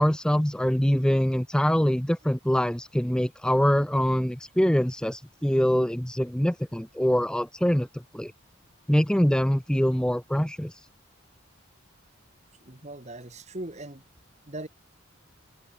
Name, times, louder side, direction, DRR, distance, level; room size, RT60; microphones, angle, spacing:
voice 1, 0.0-8.3 8.9-10.8, equal, 5° left, 0.5 m, -24 dB
voice 2, 12.6-14.0 14.5-14.7, right 1 dB, 35° right, 2.2 m, -39 dB
open air
head